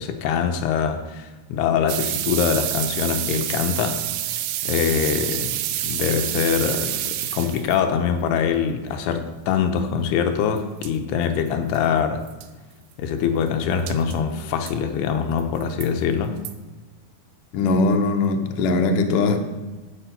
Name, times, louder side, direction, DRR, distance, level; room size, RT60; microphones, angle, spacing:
voice 1, 0.0-4.0 4.6-5.6 5.8-12.2 13.0-16.4, left 7 dB, 85° left, 6 dB, 2.8 m, -23 dB
sound 1, 1.9-7.8 10.6-10.7 10.8-10.9 11.5-11.6 11.7-11.8 12.3-12.5 13.9-14.2 14.7-14.8 15.4-15.9 16.5-16.6, right 13 dB, 80° right, 2.5 m, -28 dB
voice 2, 17.5-19.4, left 3 dB, 65° left, 5 dB, 2.2 m, -20 dB
10.0 x 6.7 x 8.3 m, 1.2 s
omnidirectional pair, 4.8 m